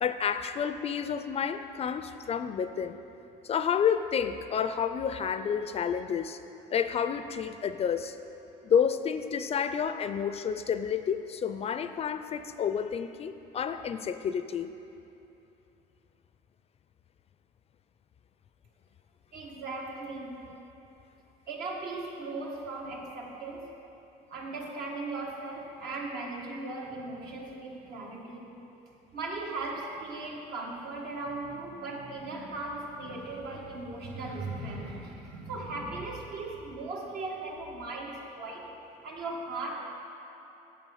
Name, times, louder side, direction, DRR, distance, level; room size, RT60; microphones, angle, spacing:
voice 1, 0.0-3.0 3.4-6.4 6.7-8.2 8.6-14.7, left 7 dB, 40° left, 11 dB, 0.4 m, -30 dB
voice 2, 19.3-20.5 21.5-23.8 24.3-28.5 29.1-38.7 39.0-39.8, right 2 dB, 75° right, -1 dB, 1.5 m, -38 dB
8.2 x 7.0 x 5.5 m, 3.0 s
cardioid pair, 110°, 17 cm